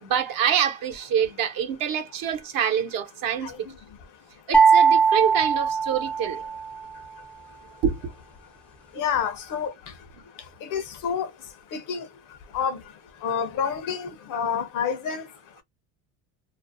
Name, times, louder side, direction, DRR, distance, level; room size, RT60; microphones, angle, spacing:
voice 1, 0.0-3.5 4.5-6.5 7.8-8.1, right 8 dB, 55° right, 0.9 m, -26 dB
sound 1, 4.5-6.7, right 6 dB, 5° left, 0.4 m, -19 dB
voice 2, 9.0-9.7 10.6-11.3 11.7-12.1 12.5-12.8 13.2-15.2, left 7 dB, 50° left, 0.6 m, -28 dB
2.5 x 2.0 x 2.5 m
supercardioid pair, 100°, 41 cm